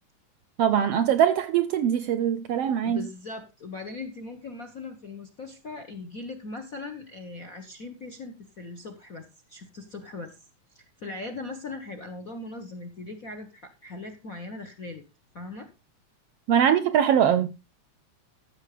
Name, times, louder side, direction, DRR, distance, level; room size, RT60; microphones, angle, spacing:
voice 1, 0.6-3.1 16.5-17.5, right 9 dB, 70° right, 1.5 m, -22 dB
voice 2, 2.8-10.4 10.7-15.0 15.3-15.7, left 3 dB, 50° left, 1.0 m, -39 dB
14.0 x 7.3 x 5.0 m
omnidirectional pair, 3.4 m